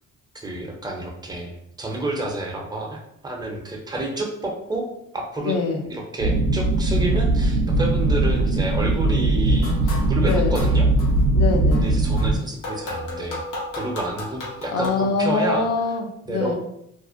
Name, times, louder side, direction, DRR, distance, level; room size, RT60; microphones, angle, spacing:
voice 1, 0.3-4.9 5.1-5.5 5.9-10.9 11.8-13.4 13.8-15.7 16.3-16.5, right 2 dB, 15° right, 0 dB, 0.5 m, -29 dB
voice 2, 5.4-5.8 10.2-10.6 11.3-11.9 14.7-16.5, left 4 dB, 55° left, 4 dB, 0.5 m, -24 dB
sound 1, 6.2-12.3, right 2 dB, 70° right, 0.5 m, -20 dB
sound 2, 9.5-11.3 11.7-14.9, left 2 dB, 90° left, 0.7 m, -35 dB
2.4 x 2.0 x 2.5 m, 0.78 s
cardioid pair, 90°, 30 cm